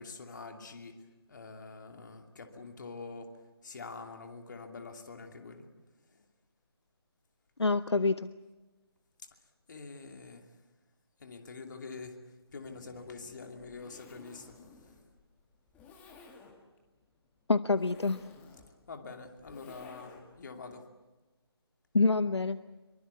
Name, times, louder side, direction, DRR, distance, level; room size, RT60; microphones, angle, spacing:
voice 1, 0.0-5.7 6.1-6.2 9.7-10.6 11.2-14.6 18.9-20.9, left 4 dB, 45° left, 5 dB, 2.6 m, -46 dB
voice 2, 7.6-8.3 17.5-18.2 21.9-22.6, left 3 dB, 80° left, 14 dB, 0.7 m, -26 dB
Zipper (clothing), 12.5-20.5, left 4 dB, 10° left, 2.0 m, -56 dB
24.0 x 23.5 x 8.3 m, 1.2 s
figure-of-eight pair, 155°, 14 cm